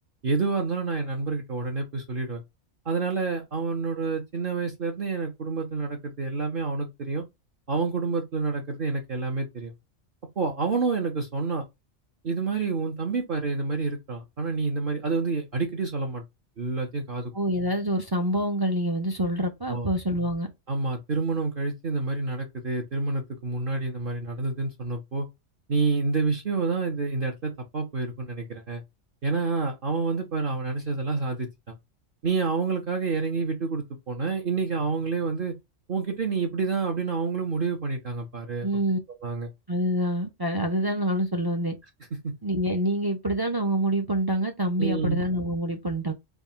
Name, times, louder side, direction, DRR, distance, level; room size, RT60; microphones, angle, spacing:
voice 1, 0.2-2.4 2.8-7.3 7.7-9.7 10.4-11.6 12.2-16.2 16.6-17.3 19.7-19.9 20.7-25.3 25.7-28.8 29.2-31.8 32.2-35.5 35.9-38.7 39.2-39.5 42.2-42.3 44.8-45.3, right 4 dB, 50° right, 0.9 m, -28 dB
voice 2, 17.3-20.5 38.6-39.0 39.7-41.7 42.4-46.1, right 1 dB, 30° right, 0.4 m, -26 dB
3.6 x 2.3 x 4.0 m
omnidirectional pair, 1.3 m